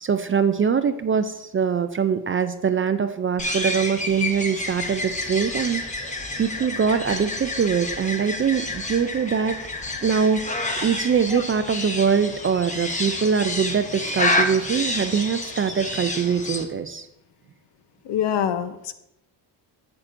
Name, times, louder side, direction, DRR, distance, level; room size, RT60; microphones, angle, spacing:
voice 1, 0.0-9.6 10.0-17.1, right 6 dB, 30° right, 10 dB, 0.3 m, -23 dB
sound 1, 3.4-16.6, left 2 dB, 15° left, 1.0 m, -29 dB
voice 2, 18.0-18.9, left 9 dB, 60° left, 11 dB, 0.8 m, -25 dB
10.5 x 7.6 x 2.6 m, 0.86 s
cardioid pair, 95°, 46 cm